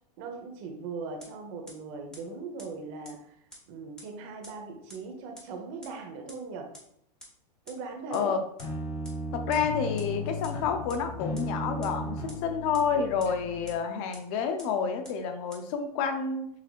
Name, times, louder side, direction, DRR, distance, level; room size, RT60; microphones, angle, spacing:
voice 1, 0.2-3.4 3.7-6.7 7.7-8.3, right 4 dB, 50° right, 4 dB, 1.0 m, -39 dB
sound 1, 1.2-1.3 1.7-1.8 2.1-2.2 2.6-2.7 3.0-3.1 3.5-3.6 4.0-4.1 4.4-4.5 4.9-5.0 5.4-5.5 5.8-5.9 6.3-6.4 6.7-6.8 7.2-7.3 7.7-7.8 8.1-8.2 8.6-8.7 9.0-9.1 9.5-9.6 10.0-10.1 10.4-10.5 10.9-11.0 11.4-11.5 11.8-11.9 12.3-12.4 12.7-12.8 13.2-13.3 13.7-13.8 14.1-14.2 14.6-14.7 15.0-15.1 15.5-15.6, equal, 5° left, 1.1 m, -46 dB
voice 2, 8.1-8.4 9.3-16.5, left 6 dB, 55° left, 6 dB, 0.7 m, -29 dB
sound 2, 8.6-13.7, left 1 dB, 85° left, 1.4 m, -36 dB
5.8 x 2.8 x 2.4 m, 0.70 s
supercardioid pair, 135°, 21 cm